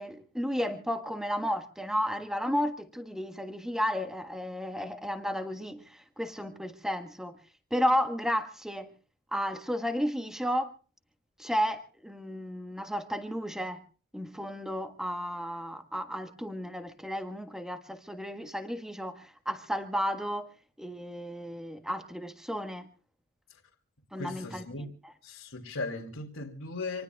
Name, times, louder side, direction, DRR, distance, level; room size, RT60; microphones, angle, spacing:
voice 1, 0.0-7.4 7.7-8.9 9.3-10.7 11.4-13.8 14.1-20.5 20.8-22.9 24.1-25.1, equal, ahead, 1.5 m, -33 dB
voice 2, 24.1-24.9 25.2-27.0, left 3 dB, 75° left, 2.7 m, -38 dB
27.5 x 19.5 x 2.3 m
head